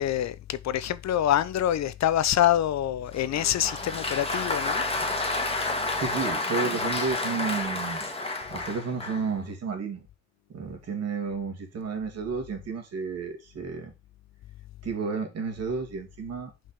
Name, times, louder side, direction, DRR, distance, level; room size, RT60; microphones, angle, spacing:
voice 1, 0.0-4.8, left 11 dB, 65° left, 0.7 m, -25 dB
Applause, 3.1-9.3, left 2 dB, 20° left, 1.8 m, -30 dB
voice 2, 6.0-8.1 8.5-10.1 10.5-13.9 14.8-16.5, right 5 dB, 55° right, 2.6 m, -32 dB
5.5 x 5.4 x 5.2 m
cardioid pair, 90°, 30 cm